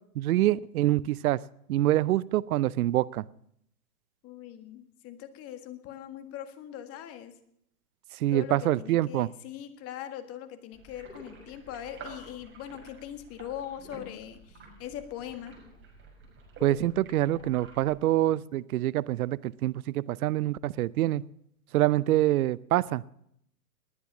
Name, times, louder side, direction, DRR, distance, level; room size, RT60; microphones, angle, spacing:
voice 1, 0.2-1.4 1.7-3.2 8.2-9.3 16.6-21.2 21.7-23.0, right 14 dB, 65° right, 20 dB, 0.6 m, -25 dB
voice 2, 4.2-7.3 8.3-15.6, left 11 dB, 30° left, 9 dB, 1.7 m, -41 dB
sound 1, 10.7-17.9, right 3 dB, 25° right, 6.2 m, -49 dB
20.0 x 9.5 x 6.0 m, 0.72 s
hypercardioid pair, 120°, 47 cm